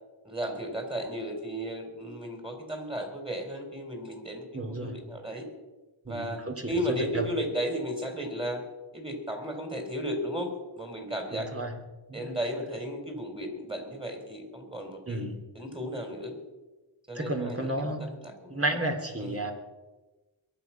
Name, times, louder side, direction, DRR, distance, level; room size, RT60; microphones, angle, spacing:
voice 1, 0.2-5.5 6.1-8.6 8.9-10.5 10.7-11.5 12.1-15.3 15.5-16.3 17.1-18.6 19.2-19.4, equal, 10° right, 3 dB, 4.2 m, -34 dB
voice 2, 4.5-5.0 6.0-6.7 7.0-7.3 11.3-11.8 12.1-12.3 15.1-15.3 17.1-18.0 18.5-19.5, right 1 dB, 30° right, 3 dB, 3.1 m, -32 dB
22.5 x 9.0 x 6.0 m, 1.2 s
wide cardioid pair, 55°, 48 cm